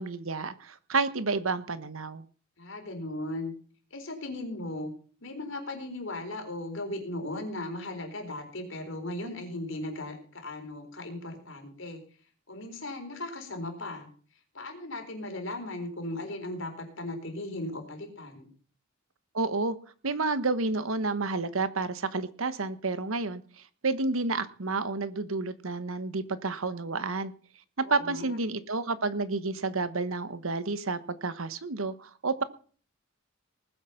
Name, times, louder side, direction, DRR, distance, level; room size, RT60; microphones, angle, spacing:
voice 1, 0.0-2.2 19.3-19.8 20.0-23.4 23.8-27.3 27.8-32.4, right 3 dB, 80° right, 13 dB, 1.2 m, -30 dB
voice 2, 2.6-3.5 3.9-4.9 5.2-12.0 12.5-14.1 14.5-18.5 27.8-28.4, left 1 dB, 65° left, 4 dB, 4.1 m, -37 dB
19.5 x 8.1 x 5.8 m, 0.42 s
head